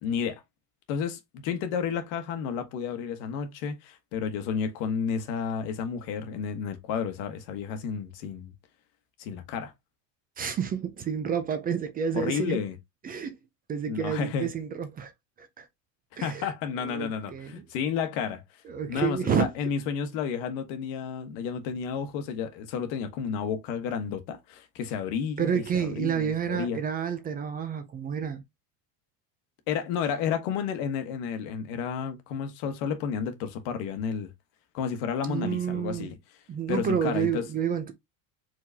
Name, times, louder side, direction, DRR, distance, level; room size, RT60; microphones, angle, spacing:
voice 1, 0.0-0.4 0.9-8.5 9.2-9.7 12.1-12.8 13.9-14.5 16.2-18.4 18.9-26.8 29.7-34.3 34.7-36.2 36.7-37.5, left 7 dB, 65° left, 1.4 m, -31 dB
voice 2, 10.4-12.6 13.0-13.4 13.7-15.1 15.4-15.7 16.2-16.5 16.8-17.5 18.7-19.5 25.4-28.4 35.3-36.1 36.5-37.9, right 7 dB, 20° right, 0.4 m, -29 dB
4.7 x 3.8 x 2.7 m
cardioid pair, 155°, 48 cm